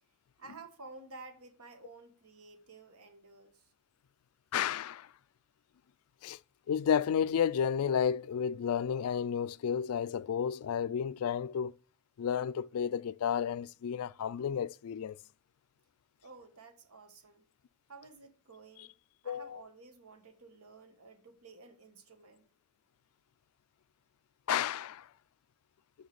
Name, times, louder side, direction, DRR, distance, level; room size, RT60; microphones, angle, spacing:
voice 1, 0.4-3.7 16.2-17.4 17.9-18.9 19.2-22.4, right 3 dB, 85° right, 1.5 m, -53 dB
voice 2, 4.5-5.1 6.2-6.4 6.7-11.7 12.2-15.2 19.2-19.6 24.5-25.1, left 8 dB, 85° left, 0.3 m, -32 dB
6.3 x 5.7 x 6.9 m
head